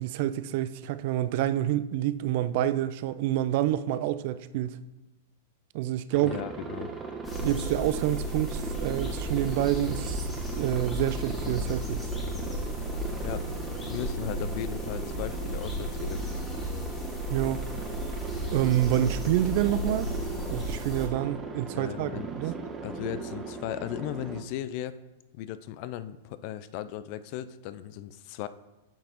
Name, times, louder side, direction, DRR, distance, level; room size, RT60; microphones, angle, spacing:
voice 1, 0.0-4.8 5.7-6.4 7.4-12.0 17.3-17.7 18.5-20.1 20.5-22.6, right 12 dB, 55° right, 0.3 m, -28 dB
Aircraft, 6.1-24.4, right 4 dB, 20° right, 0.7 m, -39 dB
voice 2, 6.2-6.9 13.2-13.4 13.9-16.3 21.7-22.3 22.8-25.0 25.3-28.5, left 12 dB, 50° left, 0.3 m, -36 dB
sound 1, 7.2-21.1, equal, 20° left, 1.9 m, -34 dB
8.5 x 5.8 x 3.0 m
figure-of-eight pair, 100°, 0 cm